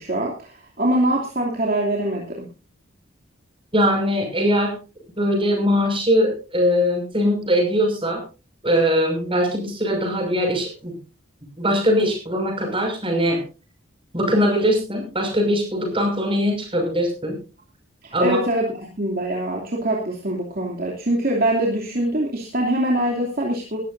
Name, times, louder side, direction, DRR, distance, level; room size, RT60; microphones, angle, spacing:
voice 1, 0.0-2.5 18.0-23.8, right 1 dB, 45° right, -1 dB, 2.9 m, -23 dB
voice 2, 3.7-4.8 5.2-8.2 8.6-11.0 11.6-13.4 14.1-17.4 18.1-18.4, equal, 25° right, 2 dB, 6.0 m, -21 dB
20.5 x 13.5 x 2.7 m, 0.31 s
head